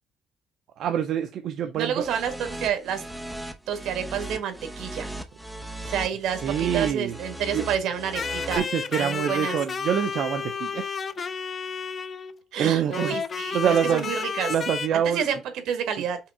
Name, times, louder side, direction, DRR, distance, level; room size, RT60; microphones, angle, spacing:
voice 1, 0.8-2.1 6.4-7.2 7.5-7.6 8.5-10.9 12.6-13.2 13.5-14.1 14.5-15.2, right 9 dB, 65° right, 0.7 m, -25 dB
voice 2, 1.7-3.0 3.7-5.1 5.8-8.6 8.9-9.6 12.5-14.5 14.9-16.2, right 8 dB, 85° right, 1.7 m, -29 dB
sound 1, 2.0-8.6, right 1 dB, ahead, 0.9 m, -37 dB
sound 2, 8.1-12.4 12.9-14.9, left 6 dB, 30° left, 0.5 m, -31 dB
5.7 x 3.6 x 5.5 m
cardioid pair, 160°, 0 cm